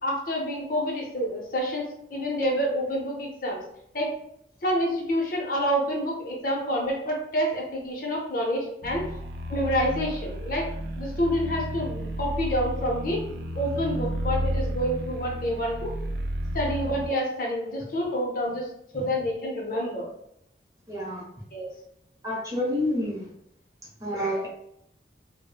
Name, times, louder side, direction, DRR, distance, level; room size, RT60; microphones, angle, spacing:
voice 1, 0.0-3.6 3.9-4.1 4.6-9.1 9.5-10.7 11.0-13.2 13.5-15.9 16.5-18.7 18.9-20.1 21.5-21.7, equal, 50° left, -1 dB, 0.6 m, -28 dB
sound 1, 8.8-17.1, equal, 60° right, 0.3 m, -32 dB
voice 2, 20.9-21.2 22.2-23.3 24.0-24.5, left 1 dB, 20° right, -5 dB, 0.7 m, -28 dB
3.0 x 2.0 x 2.2 m, 0.75 s
head